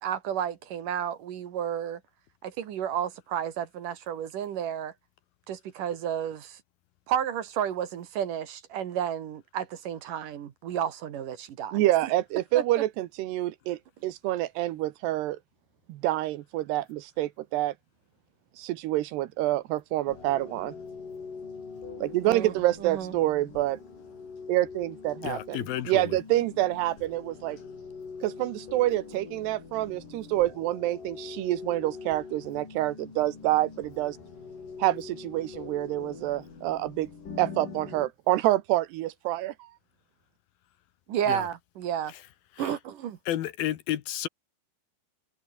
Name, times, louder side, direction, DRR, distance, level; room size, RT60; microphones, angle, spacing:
voice 1, 0.0-2.0 2.4-4.9 5.5-6.6 7.1-11.8 12.5-12.6 22.3-22.5 22.8-23.1 41.1-42.1 42.6-43.2, right 9 dB, 60° right, 3.0 m, -31 dB
voice 2, 11.7-15.4 15.9-17.7 18.6-20.7 22.0-23.8 24.5-27.6 28.2-34.2 34.8-37.1 37.4-39.7, right 15 dB, 85° right, 3.2 m, -27 dB
sound 1, 20.1-38.1, left 5 dB, 55° left, 6.9 m, -43 dB
voice 3, 25.2-26.2 41.3-41.5 42.1-42.2 42.6-42.8 43.3-44.3, left 12 dB, 70° left, 2.9 m, -32 dB
omnidirectional pair, 4.7 m